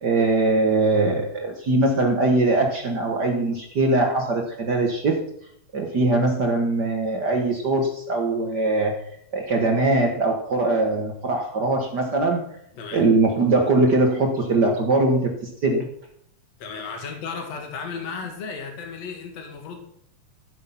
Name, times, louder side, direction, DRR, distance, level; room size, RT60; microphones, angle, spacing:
voice 1, 0.0-5.3 5.7-9.0 9.3-12.4 12.9-15.9, right 2 dB, 65° right, 2 dB, 1.0 m, -21 dB
voice 2, 12.7-13.1 16.6-19.8, left 5 dB, 50° left, 3 dB, 3.1 m, -34 dB
14.0 x 7.8 x 5.8 m, 0.68 s
omnidirectional pair, 4.0 m